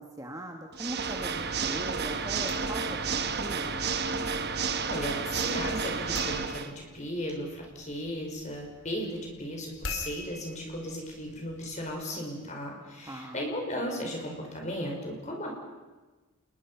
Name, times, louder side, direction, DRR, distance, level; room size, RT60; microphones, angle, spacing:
voice 1, 0.0-3.9 13.0-13.4, right 1 dB, 15° right, 2 dB, 1.5 m, -40 dB
Water / Mechanisms, 0.7-6.7, right 5 dB, 45° right, 1.2 m, -31 dB
sound 1, 2.3-12.1, left 3 dB, 65° left, 3.0 m, -47 dB
voice 2, 4.9-15.6, equal, 30° left, 0 dB, 5.5 m, -36 dB
28.0 x 21.0 x 5.8 m, 1.2 s
head